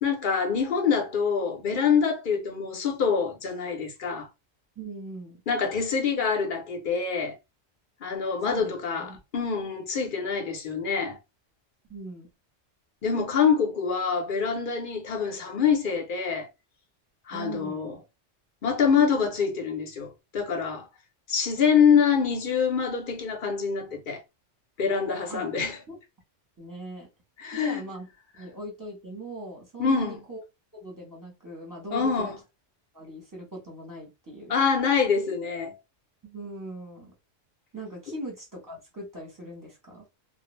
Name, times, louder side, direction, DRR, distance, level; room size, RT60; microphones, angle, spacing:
voice 1, 0.0-4.3 5.5-7.4 8.0-11.2 13.0-16.5 17.3-18.0 18.6-20.9 21.3-24.2 24.8-25.8 27.4-27.8 29.8-30.2 31.9-32.3 34.5-35.8, left 6 dB, 50° left, 0.7 m, -25 dB
voice 2, 4.8-5.4 8.5-9.2 11.9-12.3 17.3-17.9 25.3-25.4 25.9-26.0 26.6-27.1 27.5-28.1 28.4-30.4 30.7-32.3 32.9-34.6 36.2-37.1 37.7-40.0, right 1 dB, 20° right, 0.8 m, -40 dB
2.4 x 2.0 x 3.0 m
omnidirectional pair, 1.3 m